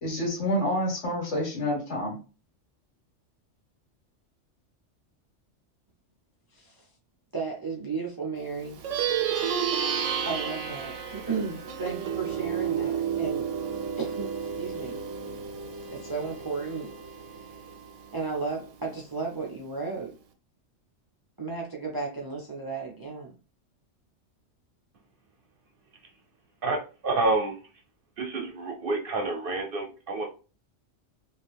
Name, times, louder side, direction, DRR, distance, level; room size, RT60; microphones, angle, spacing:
voice 1, 0.0-2.2, equal, 75° left, 1.7 m, -28 dB
voice 2, 6.5-6.9 7.3-8.8 10.2-13.5 14.0-15.0 15.9-16.9 17.3-17.6 18.1-20.1 21.4-23.4, right 4 dB, 35° right, 0.4 m, -34 dB
Plucked string instrument, 8.7-18.4, right 8 dB, 80° right, 0.9 m, -31 dB
voice 3, 26.6-27.6 28.2-30.3, right 2 dB, 55° right, 0.7 m, -28 dB
2.8 x 2.4 x 3.3 m
omnidirectional pair, 1.3 m